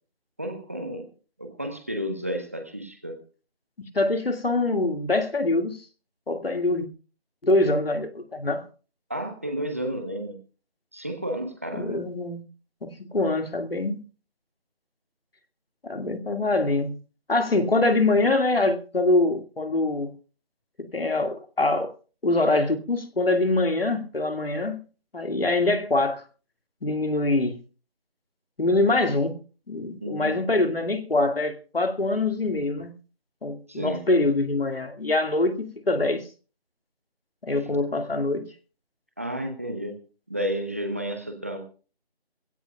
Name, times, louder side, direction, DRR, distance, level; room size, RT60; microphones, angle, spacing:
voice 1, 0.4-1.1 1.4-3.2 9.1-10.3 10.9-12.0 30.0-30.4 33.7-34.0 39.2-40.0 40.3-41.7, equal, 15° right, 1.0 m, -31 dB
voice 2, 3.9-5.8 6.3-6.9 7.4-8.6 11.7-12.4 12.8-14.0 15.8-17.0 17.3-20.1 20.8-21.9 22.2-24.8 25.1-26.2 26.8-27.6 28.6-29.4 29.7-32.9 33.4-36.2 37.4-38.5, left 2 dB, 65° left, 2.3 m, -24 dB
23.0 x 16.0 x 2.4 m
figure-of-eight pair, 170°, 31 cm